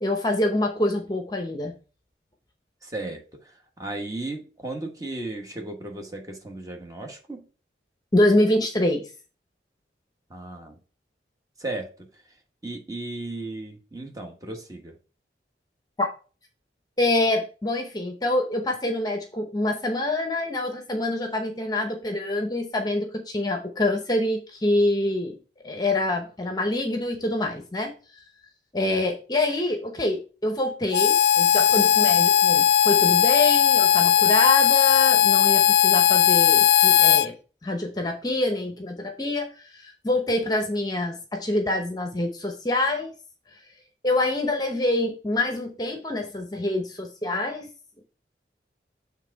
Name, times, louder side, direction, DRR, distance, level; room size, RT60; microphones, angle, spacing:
voice 1, 0.0-1.7 8.1-9.1 16.0-16.1 17.0-25.4 25.6-27.9 28.7-37.4 37.6-43.1 44.0-47.7, left 1 dB, 20° left, 0.8 m, -25 dB
voice 2, 2.8-7.4 10.3-10.8 11.6-12.0 12.6-15.0, right 2 dB, 20° right, 1.1 m, -35 dB
Harmonica, 30.9-37.3, left 10 dB, 65° left, 0.3 m, -18 dB
7.4 x 3.5 x 4.6 m
head